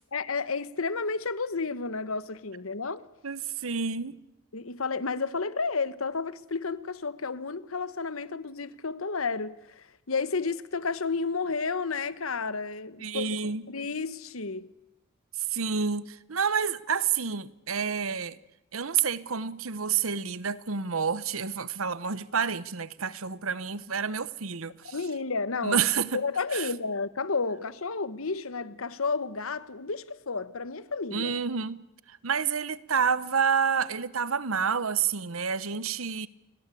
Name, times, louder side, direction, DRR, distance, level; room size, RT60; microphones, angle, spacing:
voice 1, 0.1-3.0 4.5-14.7 24.8-25.8 26.1-31.3, left 4 dB, 85° left, 1.3 m, -31 dB
voice 2, 3.2-4.2 13.0-13.6 15.4-18.4 18.7-24.9 25.6-26.2 26.5-26.7 31.1-31.8 32.1-36.3, right 6 dB, 85° right, 1.1 m, -29 dB
29.0 x 22.0 x 8.5 m
head